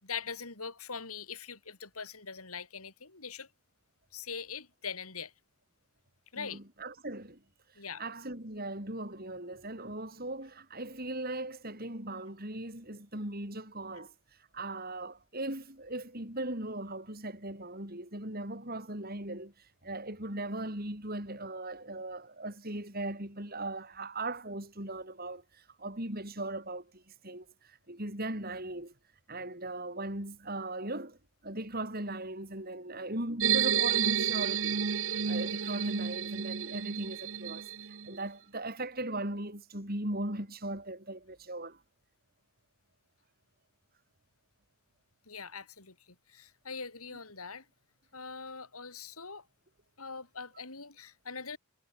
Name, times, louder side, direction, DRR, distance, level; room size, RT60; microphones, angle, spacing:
voice 1, 0.0-3.5 4.1-5.3 6.3-6.6 7.8-8.0 45.3-47.6 48.1-49.4 50.0-51.6, left 5 dB, 80° left, 4.7 m, -42 dB
voice 2, 6.3-7.4 8.0-14.1 14.5-28.9 29.3-31.2 31.4-34.8 35.3-41.8, right 1 dB, 45° right, 6.8 m, -39 dB
sound 1, 33.4-38.1, right 8 dB, 60° right, 0.9 m, -30 dB
head